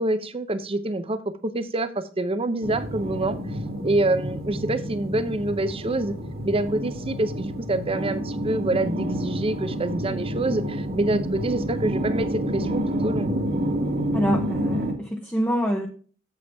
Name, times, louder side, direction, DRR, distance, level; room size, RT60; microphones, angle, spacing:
voice 1, 0.0-3.4 3.8-6.1 6.4-13.3, right 2 dB, 25° right, 12 dB, 0.6 m, -26 dB
sound 1, 2.6-14.9, equal, 50° right, 1.8 m, -29 dB
voice 2, 14.1-15.9, equal, 10° left, 1 dB, 0.8 m, -26 dB
7.7 x 7.7 x 3.5 m, 0.42 s
head